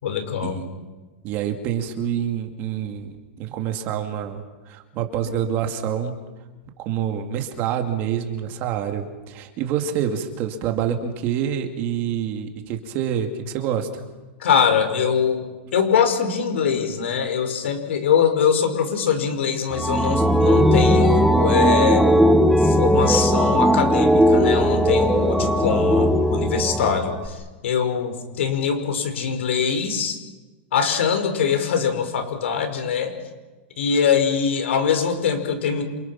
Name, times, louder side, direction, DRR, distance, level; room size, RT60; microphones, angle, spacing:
voice 1, 0.0-0.6 14.4-15.5 15.7-22.1 22.6-30.2 30.7-33.1 33.8-35.8, left 7 dB, 80° left, 7 dB, 5.4 m, -22 dB
voice 2, 1.2-6.2 6.8-14.0, right 9 dB, 30° right, 5 dB, 2.5 m, -27 dB
sound 1, 19.7-27.3, equal, ahead, 0.8 m, -18 dB
28.5 x 28.0 x 6.0 m, 1.2 s
supercardioid pair, 170°, 6 cm